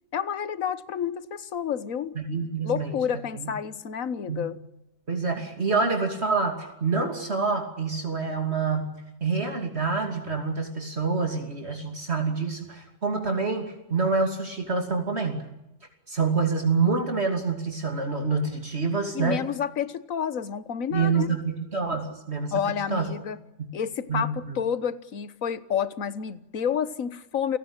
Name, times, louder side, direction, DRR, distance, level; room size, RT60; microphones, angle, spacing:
voice 1, 0.1-2.1 2.6-4.6 19.1-21.3 22.5-23.4 23.7-27.6, left 8 dB, 75° left, 14 dB, 1.6 m, -29 dB
voice 2, 2.1-2.9 3.4-3.5 4.3-4.5 5.1-8.9 9.2-15.4 16.1-19.4 20.9-23.1 23.6-23.7 24.1-24.6, right 4 dB, 50° right, 4 dB, 3.1 m, -27 dB
29.5 x 18.0 x 8.9 m, 0.92 s
omnidirectional pair, 1.4 m